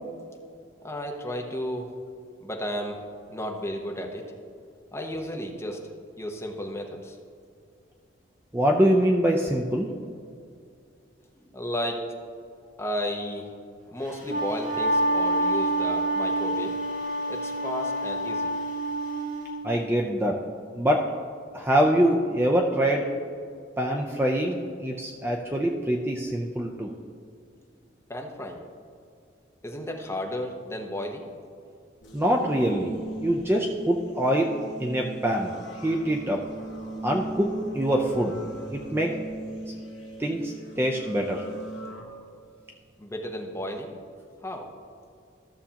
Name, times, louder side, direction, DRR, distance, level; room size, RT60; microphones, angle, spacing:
voice 1, 0.8-1.9 2.4-3.0 3.3-4.3 4.9-5.8 6.2-7.2 11.4-12.1 12.8-13.5 13.9-16.7 17.3-18.5 28.1-28.6 29.6-31.3 43.0-43.9 44.4-44.7, equal, 15° left, 1 dB, 0.8 m, -33 dB
voice 2, 8.5-9.9 19.6-20.4 20.8-21.1 21.5-23.1 23.8-26.9 32.1-32.9 33.2-35.5 35.8-36.4 37.0-38.4 38.7-39.1 40.2-41.4, equal, 10° right, 0 dB, 0.5 m, -24 dB
Wind instrument woodwind instrument, 14.1-19.5, right 1 dB, 40° right, 1.4 m, -27 dB
sound 1, 32.0-42.0, right 1 dB, 65° left, 1.7 m, -39 dB
14.0 x 6.9 x 2.9 m, 2.3 s
head